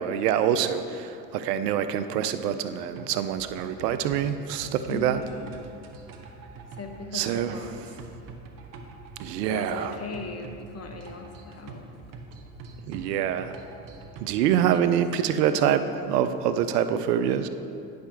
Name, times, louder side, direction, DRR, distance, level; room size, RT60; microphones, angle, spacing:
voice 1, 0.0-5.2 7.1-7.6 9.2-10.0 12.9-13.6 14.2-17.5, right 9 dB, 80° right, 11 dB, 0.6 m, -25 dB
sound 1, 2.8-14.4, right 3 dB, 45° right, 1.0 m, -45 dB
voice 2, 4.9-5.5 6.8-7.8 9.5-11.9 14.4-15.5, left 3 dB, 30° left, 4 dB, 1.0 m, -39 dB
9.7 x 6.5 x 3.4 m, 2.6 s
hypercardioid pair, 75°, 47 cm